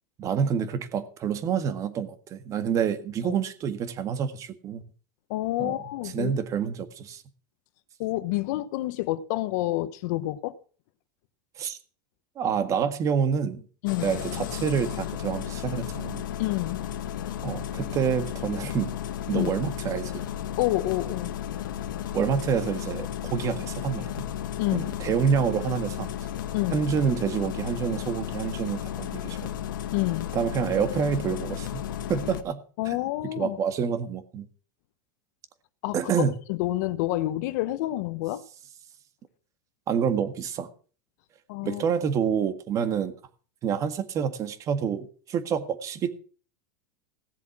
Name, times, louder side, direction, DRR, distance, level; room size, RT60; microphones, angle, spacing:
voice 1, 0.2-4.8 5.6-5.8 6.1-7.2 11.6-11.8 12.4-13.6 14.0-16.2 17.4-18.9 19.3-20.2 22.1-24.2 24.7-26.1 26.7-29.5 30.3-31.8 32.1-32.6 33.4-34.5 35.9-36.3 39.9-40.7 41.6-43.1 43.6-46.1, right 7 dB, 30° right, 1.7 m, -27 dB
voice 2, 5.3-6.3 8.0-10.5 13.8-14.1 16.4-17.0 19.3-19.5 20.6-21.4 21.8-21.9 24.6-24.9 26.5-26.8 29.9-30.4 32.8-33.6 35.8-38.4 41.5-41.8, left 17 dB, 60° left, 1.0 m, -28 dB
Engine starting, 13.9-32.4, left 10 dB, 90° left, 1.6 m, -34 dB
17.0 x 7.4 x 6.1 m
supercardioid pair, 140°, 10 cm